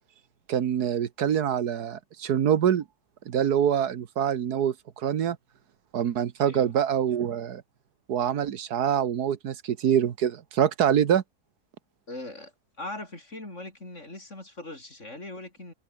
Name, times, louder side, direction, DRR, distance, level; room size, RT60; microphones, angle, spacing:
voice 1, 0.5-2.8 3.3-5.4 5.9-7.6 8.1-11.2, right 9 dB, 80° right, 1.6 m, -25 dB
voice 2, 6.4-6.8 12.1-12.5 12.8-15.7, left 2 dB, 45° left, 6.2 m, -40 dB
omnidirectional pair, 1.7 m